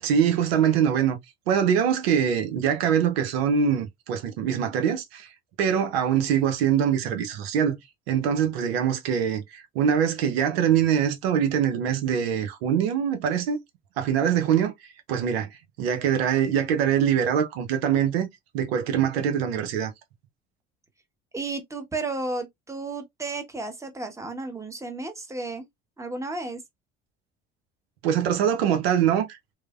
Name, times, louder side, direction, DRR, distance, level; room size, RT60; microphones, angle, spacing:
voice 1, 0.0-1.2 1.5-5.3 5.6-7.8 8.1-13.6 14.0-14.7 15.1-15.5 15.8-18.3 18.5-19.9 28.0-29.5, right 8 dB, 85° right, 0.6 m, -23 dB
voice 2, 21.3-25.7 26.0-26.6, right 3 dB, 10° right, 0.8 m, -33 dB
3.1 x 2.0 x 2.3 m
hypercardioid pair, 70°, 30 cm